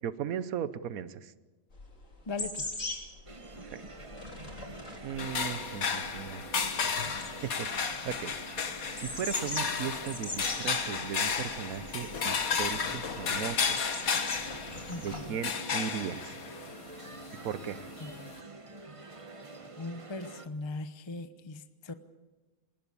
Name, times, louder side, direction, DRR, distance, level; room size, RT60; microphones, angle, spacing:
voice 1, 0.0-1.3 3.6-3.8 5.0-6.4 7.4-8.3 9.0-13.8 15.0-16.4 17.4-17.9, right 8 dB, 85° right, 15 dB, 1.3 m, -37 dB
sound 1, 1.7-15.3, left 2 dB, 65° left, 3.6 m, -42 dB
voice 2, 2.3-2.7 14.9-15.4 18.0-18.3 19.8-21.9, left 3 dB, 25° left, 11 dB, 0.8 m, -39 dB
sound 2, 3.3-20.5, right 3 dB, 25° right, 1.2 m, -48 dB
sound 3, 5.2-18.4, left 6 dB, 90° left, 1.9 m, -33 dB
20.0 x 19.5 x 8.6 m, 1.2 s
omnidirectional pair, 1.4 m